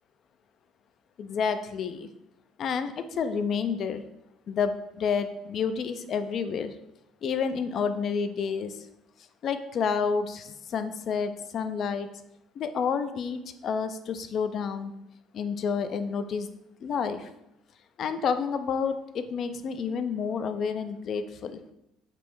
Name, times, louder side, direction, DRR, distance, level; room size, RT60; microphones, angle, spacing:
voice 1, 1.2-2.1 2.6-4.0 4.5-6.7 7.2-8.9 9.4-12.1 12.6-14.9 15.3-16.5 16.8-17.3 18.0-21.6, left 6 dB, 50° left, 10 dB, 0.4 m, -29 dB
5.3 x 2.1 x 4.6 m, 0.85 s
supercardioid pair, 95°, 0 cm